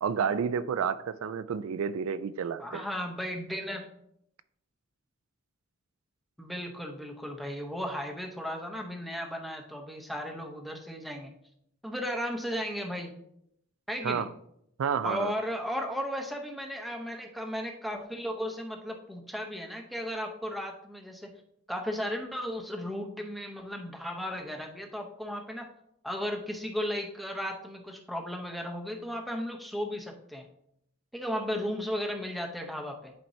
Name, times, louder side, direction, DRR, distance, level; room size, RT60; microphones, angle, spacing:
voice 1, 0.0-2.8 14.0-14.3 14.8-15.3, right 7 dB, 75° right, 0.4 m, -30 dB
voice 2, 2.6-3.9 6.4-11.3 11.8-13.1 13.9-14.3 15.0-21.3 21.7-25.7 26.0-30.5 31.1-33.1, equal, ahead, 0.7 m, -35 dB
11.0 x 4.4 x 2.7 m
head